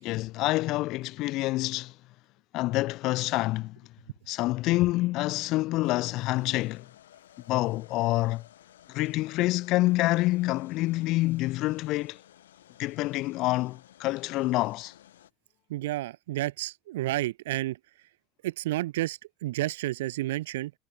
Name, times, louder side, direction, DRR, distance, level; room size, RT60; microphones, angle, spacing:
voice 1, 0.0-1.9 2.5-3.8 4.3-6.9 7.5-8.4 8.9-12.2 12.8-14.9, left 19 dB, 65° left, 0.4 m, -27 dB
sound 1, 5.8-15.3, left 12 dB, 85° left, 4.1 m, -56 dB
voice 2, 15.7-17.8 18.4-20.7, right 16 dB, 80° right, 0.9 m, -31 dB
hypercardioid pair, 70°, 0 cm